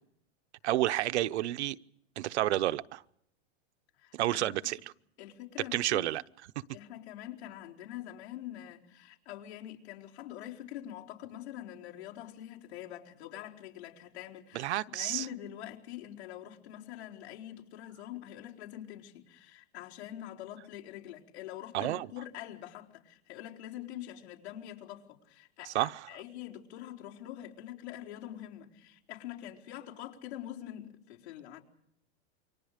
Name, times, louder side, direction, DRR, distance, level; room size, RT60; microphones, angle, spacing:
voice 1, 0.6-1.8 2.2-3.0 4.1-4.8 5.7-6.2 14.5-15.3 21.7-22.1 25.6-26.1, right 14 dB, 85° right, 0.9 m, -30 dB
voice 2, 4.0-4.5 5.2-6.1 6.7-31.6, left 12 dB, 75° left, 4.5 m, -45 dB
29.0 x 24.5 x 5.1 m
supercardioid pair, 170°, 33 cm